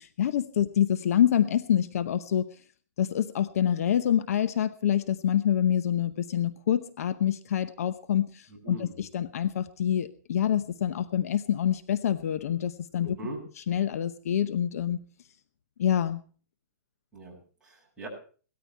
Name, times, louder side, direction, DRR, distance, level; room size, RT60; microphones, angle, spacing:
voice 1, 0.0-2.5 3.0-13.2 13.7-15.0 15.8-16.2, left 10 dB, 55° left, 13 dB, 0.9 m, -26 dB
voice 2, 8.5-9.0 13.0-13.4 17.1-18.1, right 2 dB, 10° right, -5 dB, 7.1 m, -41 dB
18.5 x 13.5 x 4.6 m, 0.40 s
hypercardioid pair, 160°, 10 cm